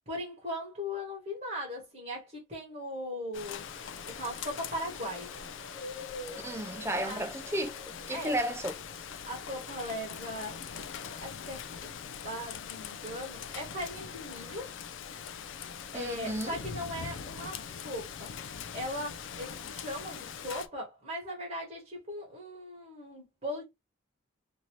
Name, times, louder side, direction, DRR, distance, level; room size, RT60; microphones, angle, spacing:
voice 1, 0.1-3.7 4.1-5.3 7.0-7.2 8.1-8.3 9.3-10.6 11.2-11.9 12.2-14.8 15.9-18.3 18.7-23.6, equal, 35° right, 1.0 m, -39 dB
Rain, 3.3-20.7, left 7 dB, 60° left, 0.4 m, -42 dB
sound 1, 3.4-11.0, left 1 dB, 25° left, 1.4 m, -49 dB
voice 2, 6.4-8.7 15.9-16.5, right 1 dB, 10° right, 0.3 m, -33 dB
2.8 x 2.6 x 3.0 m
head